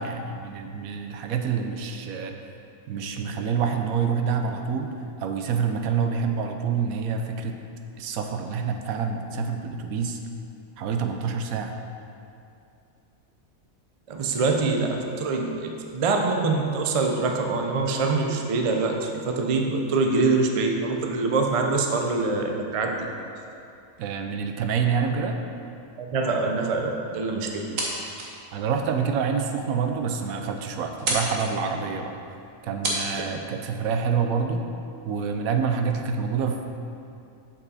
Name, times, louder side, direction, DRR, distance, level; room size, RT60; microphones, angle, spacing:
voice 1, 0.0-2.4 2.9-7.6 8.0-10.2 10.8-11.8 24.0-25.4 27.7-27.8 28.5-32.2 32.6-34.6 35.0-36.6, right 6 dB, 85° right, 5 dB, 1.1 m, -27 dB
voice 2, 14.1-23.1 26.0-27.6 33.1-33.3, right 3 dB, 50° right, 2 dB, 0.4 m, -24 dB
sound 1, 27.5-28.4 28.8-28.9 29.6-29.7 30.0-30.1 30.3-30.6 30.9-31.5 32.4-32.5 32.8-33.0, right 2 dB, 70° right, 1.5 m, -29 dB
7.3 x 5.5 x 4.1 m, 2.6 s
omnidirectional pair, 1.4 m